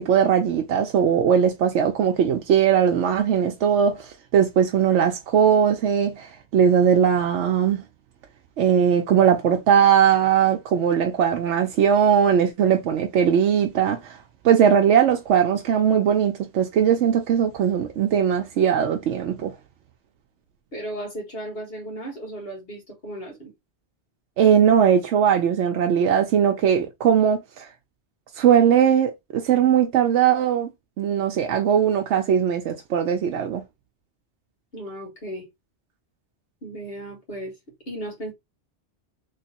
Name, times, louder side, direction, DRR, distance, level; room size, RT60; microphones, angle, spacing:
voice 1, 0.0-7.8 8.6-14.2 14.4-19.5 24.4-27.7 28.4-30.7 31.0-33.6, right 8 dB, 90° right, 0.9 m, -19 dB
voice 2, 20.7-23.5 34.7-35.5 36.6-37.5 37.9-38.3, right 1 dB, 60° left, 2.0 m, -35 dB
3.2 x 3.2 x 2.9 m
omnidirectional pair, 1.2 m